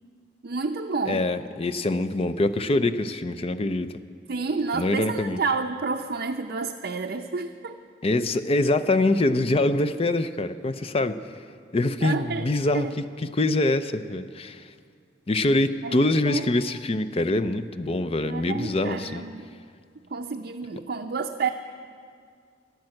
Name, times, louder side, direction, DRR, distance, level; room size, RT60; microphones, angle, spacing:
voice 1, 0.4-1.3 4.3-7.8 12.0-12.5 12.7-12.9 15.8-15.9 16.3-16.4 18.3-19.6 20.1-21.5, right 4 dB, 60° right, 2 dB, 0.6 m, -30 dB
voice 2, 1.1-3.9 4.7-5.4 8.0-11.2 11.7-14.7 15.3-19.2, left 2 dB, 35° left, 11 dB, 0.5 m, -24 dB
15.0 x 10.5 x 7.7 m, 2.1 s
head